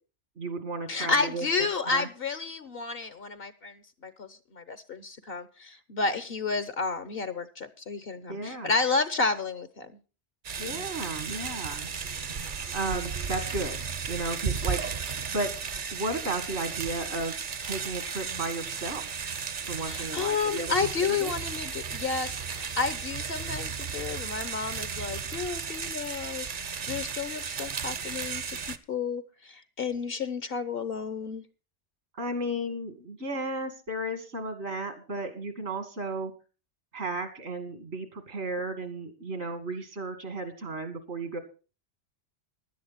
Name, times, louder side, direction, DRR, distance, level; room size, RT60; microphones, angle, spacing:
voice 1, 0.4-1.4 1.9-2.1 8.3-8.7 10.6-11.9 12.7-14.8 15.3-15.5 15.9-17.3 17.6-19.0 19.7-20.7 21.1-21.3 32.1-36.3 36.9-41.4, right 2 dB, 75° right, 2.3 m, -34 dB
voice 2, 0.9-9.9 19.8-26.5 26.8-31.4, left 4 dB, 60° left, 1.1 m, -31 dB
sound 1, 10.4-28.8, right 6 dB, 50° right, 0.9 m, -34 dB
16.0 x 11.0 x 4.1 m
omnidirectional pair, 1.2 m